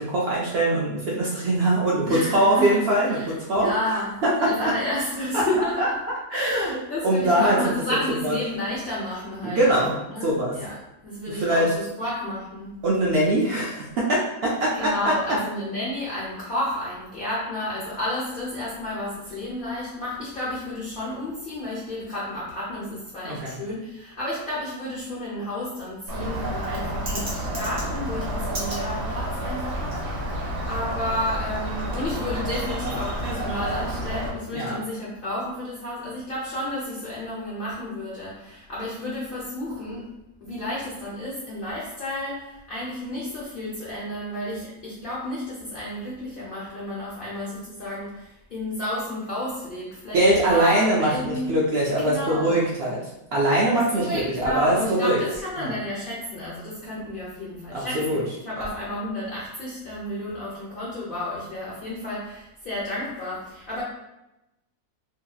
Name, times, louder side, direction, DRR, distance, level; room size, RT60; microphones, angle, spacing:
voice 1, 0.0-3.2 3.5-3.7 4.2-4.7 5.3-5.5 5.8-5.9 6.3-6.8 7.0-7.7 8.2-8.4 9.4-9.9 10.2-10.6 11.3-11.7 12.8-15.1 23.2-23.5 34.5-34.8 50.1-53.0 53.3-55.2 55.6-55.7 57.7-58.2, right 1 dB, 75° right, -5 dB, 0.5 m, -22 dB
voice 2, 2.1-2.8 3.1-5.8 6.3-9.8 10.1-10.7 11.0-12.7 14.7-40.1 40.4-51.6 51.9-52.8 53.7-63.8, left 1 dB, 55° left, -7 dB, 0.6 m, -31 dB
Bird, 26.1-34.3, right 1 dB, 50° right, 0.9 m, -29 dB
2.8 x 2.6 x 2.3 m, 0.94 s
omnidirectional pair, 1.6 m